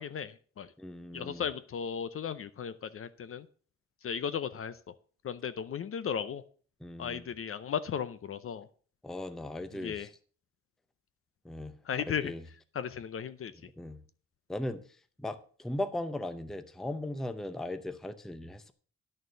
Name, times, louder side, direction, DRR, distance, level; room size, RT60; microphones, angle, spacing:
voice 1, 0.0-0.7 1.1-3.5 4.0-4.9 5.2-6.4 7.0-8.7 9.7-10.1 11.9-12.3 12.7-13.5, left 7 dB, 45° left, 13 dB, 0.6 m, -36 dB
voice 2, 0.8-1.5 6.8-7.3 9.0-10.1 11.4-11.7 12.2-12.4 13.8-14.0 14.5-14.8 15.2-18.7, left 1 dB, ahead, 10 dB, 0.6 m, -38 dB
11.0 x 6.6 x 6.7 m, 0.43 s
wide cardioid pair, 165°, 30 cm